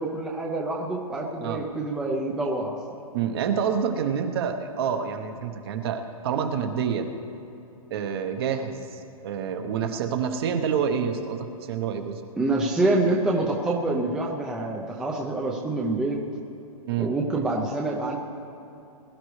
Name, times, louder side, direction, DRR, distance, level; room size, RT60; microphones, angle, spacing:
voice 1, 0.0-2.8 12.4-16.2 17.0-18.2, right 2 dB, 5° right, -2 dB, 0.5 m, -26 dB
voice 2, 3.1-7.1 7.9-8.9 9.2-12.2 16.9-17.1, right 7 dB, 40° right, 6 dB, 1.0 m, -27 dB
21.0 x 12.0 x 3.2 m, 2.8 s
hypercardioid pair, 160°, 19 cm